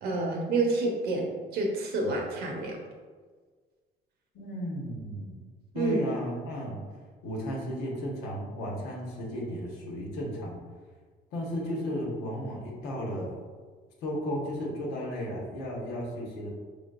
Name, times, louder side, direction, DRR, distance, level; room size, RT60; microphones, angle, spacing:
voice 1, 0.0-2.8 5.7-5.9, right 2 dB, 70° right, 0 dB, 1.0 m, -29 dB
voice 2, 4.3-5.4 5.7-6.8 7.2-10.6 11.3-13.4 14.0-16.5, equal, 90° left, -2 dB, 1.2 m, -34 dB
5.0 x 3.5 x 2.5 m, 1.5 s
cardioid pair, 110°, 17 cm